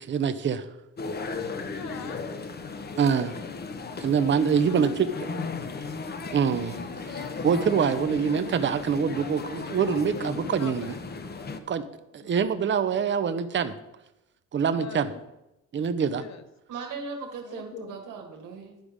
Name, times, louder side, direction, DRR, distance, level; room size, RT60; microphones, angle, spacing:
voice 1, 0.1-0.7 3.0-3.3 4.0-5.1 6.3-6.8 7.1-10.9 11.7-11.8 12.1-13.7 14.5-15.1 15.7-16.2, right 6 dB, 40° right, 11 dB, 0.7 m, -25 dB
sound 1, 1.0-11.6, left 4 dB, 35° left, 0.8 m, -36 dB
voice 2, 1.7-2.2 4.0-5.8 9.9-11.0 12.2-12.7 14.7-15.2 16.1-16.4 17.4-18.0, left 8 dB, 65° left, 11 dB, 0.8 m, -44 dB
voice 3, 16.7-18.7, right 4 dB, 90° right, 2 dB, 1.6 m, -38 dB
10.5 x 4.9 x 5.0 m, 0.92 s
cardioid pair, 90°, 30 cm